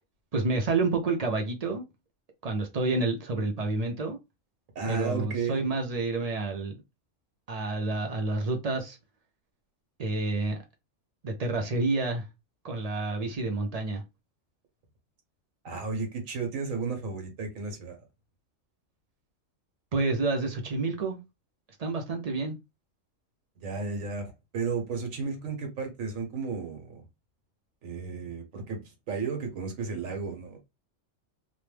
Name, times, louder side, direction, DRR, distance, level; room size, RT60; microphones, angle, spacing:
voice 1, 0.3-1.8 2.4-4.2 4.9-6.8 7.5-9.0 10.0-10.6 11.2-12.2 12.6-14.0 19.9-21.2 21.8-22.5, right 3 dB, 50° right, 0.4 m, -29 dB
voice 2, 4.7-5.6 15.6-18.1 23.6-27.0 27.8-30.6, right 4 dB, 85° right, 1.3 m, -33 dB
3.1 x 2.0 x 3.1 m
omnidirectional pair, 1.3 m